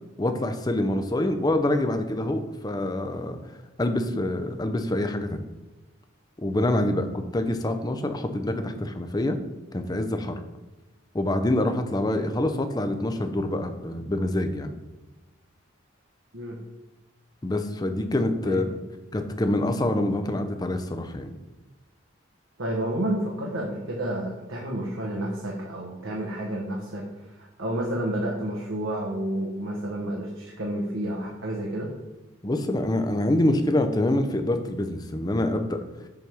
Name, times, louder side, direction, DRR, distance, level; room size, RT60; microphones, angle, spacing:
voice 1, 0.2-3.4 3.8-5.4 6.4-9.4 9.7-10.4 11.1-14.8 17.4-18.8 19.1-21.3 32.4-35.8, left 1 dB, 20° left, 7 dB, 0.5 m, -26 dB
voice 2, 22.6-27.0 27.4-31.9, right 1 dB, 75° right, -2 dB, 1.1 m, -30 dB
7.0 x 3.5 x 6.1 m, 1.1 s
head